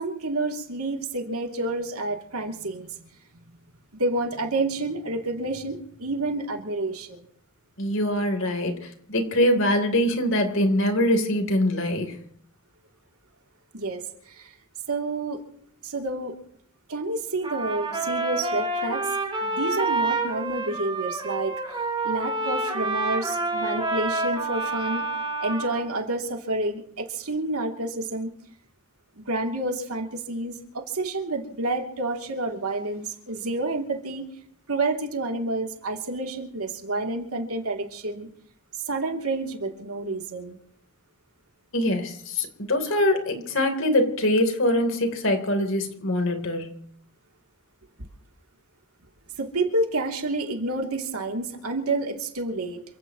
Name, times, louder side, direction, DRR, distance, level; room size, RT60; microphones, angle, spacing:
voice 1, 0.0-3.0 4.0-7.2 13.7-14.5 14.9-15.4 15.8-16.3 16.9-19.1 19.4-21.6 22.0-25.1 25.4-28.3 29.3-34.3 34.7-38.3 38.9-40.6 49.4-52.8, right 2 dB, 80° right, 3 dB, 3.0 m, -29 dB
voice 2, 7.8-12.1 41.7-46.8, left 1 dB, 60° left, 5 dB, 3.5 m, -23 dB
Trumpet, 17.4-25.8, right 2 dB, 25° right, 5.0 m, -28 dB
28.0 x 16.5 x 3.1 m, 0.65 s
head